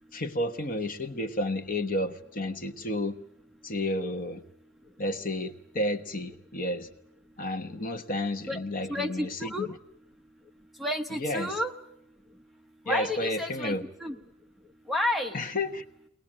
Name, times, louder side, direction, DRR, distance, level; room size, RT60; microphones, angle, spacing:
voice 1, 0.1-3.1 3.6-4.4 5.0-6.9 7.4-9.7 11.2-11.6 12.9-13.8 15.3-15.8, left 1 dB, 40° left, 8 dB, 1.1 m, -31 dB
voice 2, 8.9-9.7 10.8-11.7 12.9-14.2 14.9-15.3, left 1 dB, ahead, 4 dB, 1.0 m, -31 dB
22.5 x 19.5 x 8.7 m, 0.76 s
head